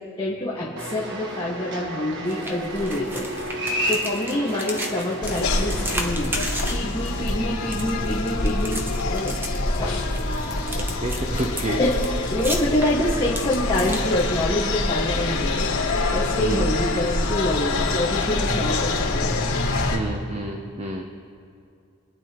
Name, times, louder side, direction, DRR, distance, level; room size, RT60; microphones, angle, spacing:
voice 1, 0.2-3.3 3.8-6.3 6.7-9.3 9.8-10.1 11.8-12.0 12.3-15.7 16.1-19.4, left 1 dB, 25° left, -7 dB, 1.7 m, -26 dB
sound 1, 0.8-6.1, equal, 55° right, 1.5 m, -31 dB
sound 2, 2.3-14.7, equal, 10° right, 1.2 m, -35 dB
sound 3, 5.2-20.0, left 2 dB, 85° left, 2.8 m, -25 dB
voice 2, 10.7-11.8 16.4-16.6 19.9-21.0, right 1 dB, 30° right, 2 dB, 0.8 m, -29 dB
26.5 x 10.0 x 3.1 m, 2.5 s
head